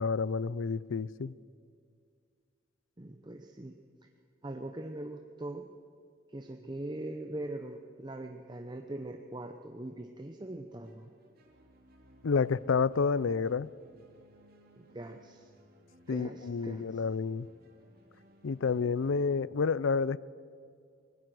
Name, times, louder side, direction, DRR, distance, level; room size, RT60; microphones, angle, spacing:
voice 1, 0.0-1.3 12.2-13.7 16.1-17.5 18.4-20.2, left 5 dB, 90° left, 20 dB, 0.5 m, -29 dB
voice 2, 3.0-3.8 4.4-5.7 6.3-11.1 14.8-15.5 16.1-17.0, right 1 dB, 25° right, 4 dB, 0.8 m, -41 dB
sound 1, 10.7-19.3, equal, 50° right, 2.6 m, -61 dB
24.5 x 19.0 x 6.3 m, 2.2 s
head